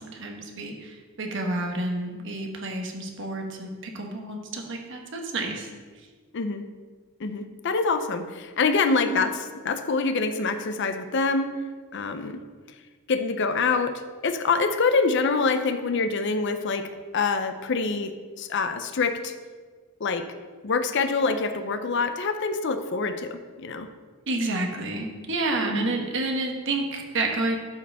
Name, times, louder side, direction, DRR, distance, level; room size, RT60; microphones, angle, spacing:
voice 1, 0.0-5.7 9.0-9.3 24.3-27.6, right 2 dB, 60° right, 2 dB, 1.2 m, -30 dB
voice 2, 6.3-6.7 7.2-11.5 11.9-12.4 13.1-13.9 14.2-16.9 17.1-19.3 20.0-20.2 20.6-23.9 25.7-25.9, left 4 dB, 55° left, 8 dB, 0.5 m, -25 dB
12.0 x 5.0 x 3.5 m, 1.5 s
head